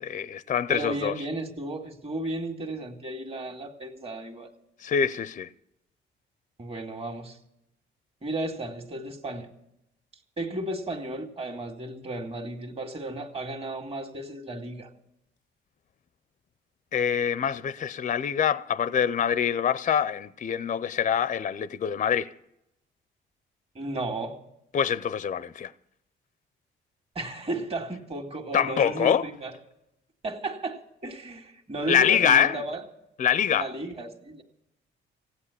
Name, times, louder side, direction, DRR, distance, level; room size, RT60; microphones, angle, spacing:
voice 1, 0.0-1.1 4.8-5.5 16.9-22.3 24.7-25.7 28.5-29.3 31.9-32.6 33.2-33.7, left 8 dB, 40° left, 0.5 m, -25 dB
voice 2, 0.7-4.5 6.6-7.4 8.2-9.5 10.4-14.9 23.8-24.4 27.2-29.5 30.2-32.8 33.5-34.4, right 2 dB, 30° right, 2.0 m, -34 dB
16.0 x 9.3 x 8.3 m
cardioid pair, 90°, 20 cm